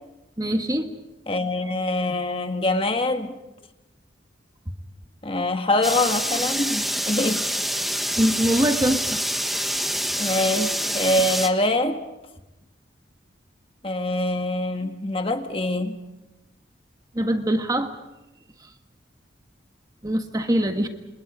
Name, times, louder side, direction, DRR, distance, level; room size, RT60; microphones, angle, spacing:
voice 1, 0.4-0.9 8.2-9.2 17.1-17.9 20.0-20.9, equal, 20° right, 1.6 m, -23 dB
voice 2, 1.3-3.3 5.2-7.4 10.2-12.0 13.8-16.0, left 2 dB, 30° left, 1.6 m, -24 dB
sound 1, 5.8-11.5, equal, ahead, 1.3 m, -26 dB
29.5 x 27.5 x 5.1 m
head